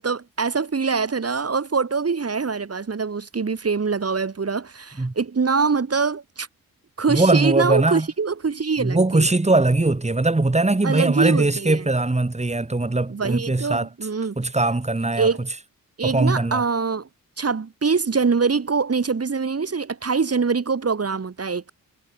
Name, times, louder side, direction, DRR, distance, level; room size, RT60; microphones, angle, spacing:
voice 1, 0.0-6.5 7.0-9.3 10.8-11.9 13.1-14.4 15.2-15.5 16.0-17.1 17.4-21.7, right 5 dB, 45° right, 5.0 m, -24 dB
voice 2, 7.1-8.1 8.8-13.9 14.4-15.3 16.0-16.6, right 2 dB, 20° right, 5.3 m, -20 dB
cardioid pair, 80°, 35 cm